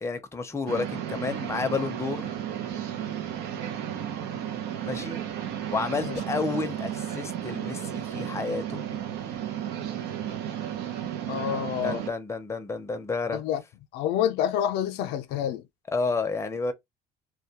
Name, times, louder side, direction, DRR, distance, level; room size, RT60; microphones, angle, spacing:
voice 1, 0.0-2.3 4.9-5.2 5.7-8.8 11.8-13.4 15.9-16.7, left 4 dB, 15° left, 0.5 m, -30 dB
sound 1, 0.7-12.1, right 10 dB, 80° right, 0.6 m, -33 dB
voice 2, 11.3-12.0 13.3-13.6 13.9-15.6, left 10 dB, 85° left, 0.4 m, -28 dB
2.2 x 2.2 x 2.7 m
cardioid pair, 110°, 17 cm